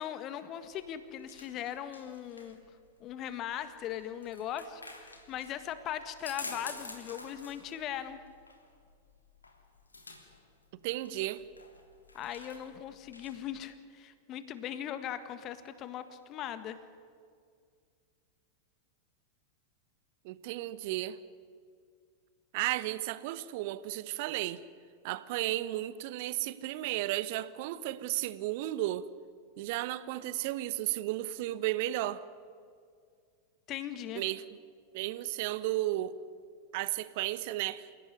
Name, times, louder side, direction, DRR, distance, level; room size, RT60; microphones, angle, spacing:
voice 1, 0.0-2.6 3.0-8.2 12.1-16.8 33.7-34.2, left 10 dB, 35° left, 11 dB, 1.7 m, -39 dB
sound 1, 0.6-13.6, left 2 dB, 80° left, 3.2 m, -50 dB
voice 2, 10.8-11.4 20.2-21.2 22.5-24.6 25.0-29.1 29.6-32.2 34.1-34.4 34.9-36.2 36.7-37.9, right 15 dB, 50° right, 15 dB, 1.2 m, -33 dB
28.5 x 17.5 x 9.7 m, 2.1 s
figure-of-eight pair, 90°, 0 cm